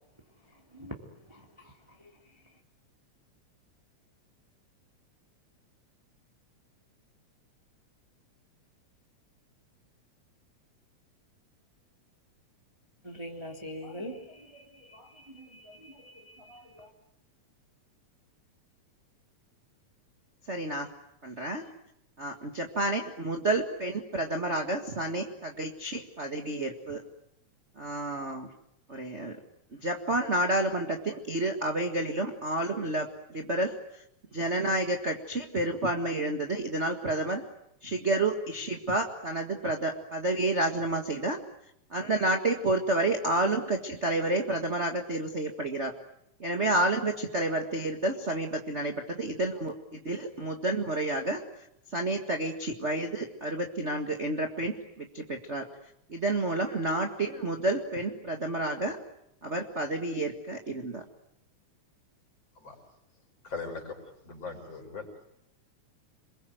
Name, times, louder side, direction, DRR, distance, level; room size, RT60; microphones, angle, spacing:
voice 1, 1.3-1.7 2.0-2.1 13.0-16.9, equal, 10° right, 1 dB, 3.0 m, -44 dB
voice 2, 20.5-20.9 21.2-21.7 22.2-27.0 27.7-28.5 28.9-29.4 29.8-34.0 34.3-37.4 37.8-41.4 41.9-45.9 46.4-55.7 56.1-59.0 59.4-61.0, right 2 dB, 30° right, 2 dB, 1.7 m, -30 dB
voice 3, 63.4-64.0 64.2-65.2, left 4 dB, 55° left, 2 dB, 6.2 m, -39 dB
28.0 x 22.0 x 9.2 m, 0.77 s
omnidirectional pair, 3.4 m